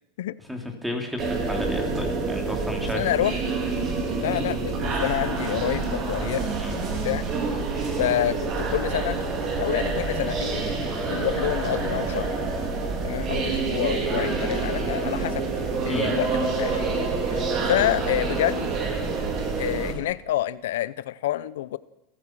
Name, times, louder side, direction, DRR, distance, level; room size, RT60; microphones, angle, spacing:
voice 1, 0.5-3.1 6.6-6.8 15.9-16.1, left 1 dB, 5° right, 3 dB, 3.2 m, -32 dB
sound 1, 1.2-19.9, right 4 dB, 35° right, 3.7 m, -27 dB
voice 2, 2.9-3.4 4.2-6.5 7.0-7.3 8.0-9.2 9.6-10.6 11.1-12.3 13.0-15.4 15.8-16.9 17.3-18.7 19.6-21.8, left 14 dB, 80° left, 17 dB, 0.6 m, -28 dB
29.0 x 14.5 x 6.1 m, 0.91 s
supercardioid pair, 155°, 0 cm